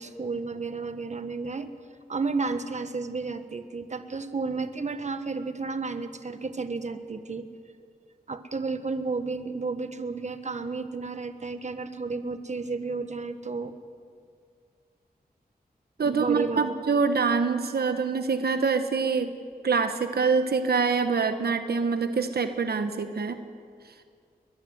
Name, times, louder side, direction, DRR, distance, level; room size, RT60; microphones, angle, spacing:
voice 1, 0.0-1.7 2.1-7.4 8.3-13.7 16.0-16.7, right 4 dB, 45° right, 9 dB, 1.4 m, -32 dB
voice 2, 16.0-19.3 19.6-23.4, right 5 dB, 85° right, 8 dB, 1.1 m, -25 dB
21.0 x 21.0 x 7.9 m, 2.2 s
wide cardioid pair, 75°, 16 cm